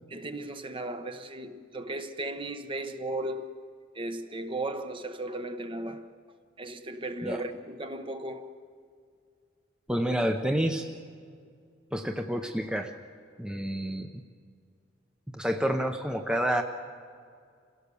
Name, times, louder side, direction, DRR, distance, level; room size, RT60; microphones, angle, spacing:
voice 1, 0.1-3.5 3.9-6.1 6.6-8.5, right 1 dB, 30° right, 0.9 m, -36 dB
voice 2, 9.9-10.9 11.9-12.9 13.4-14.1 15.3-16.6, equal, 5° right, 0.7 m, -28 dB
27.0 x 16.5 x 7.0 m
head